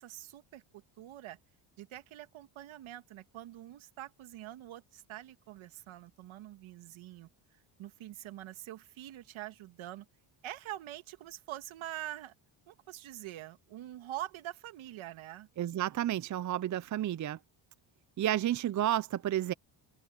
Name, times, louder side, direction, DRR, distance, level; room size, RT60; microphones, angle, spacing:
voice 1, 0.0-1.4 1.8-7.3 7.8-10.1 10.4-12.3 12.7-15.5, right 14 dB, 75° right, 1.8 m, -45 dB
voice 2, 15.6-17.4 18.2-19.5, right 12 dB, 40° right, 0.6 m, -31 dB
cardioid pair, 95°, 49 cm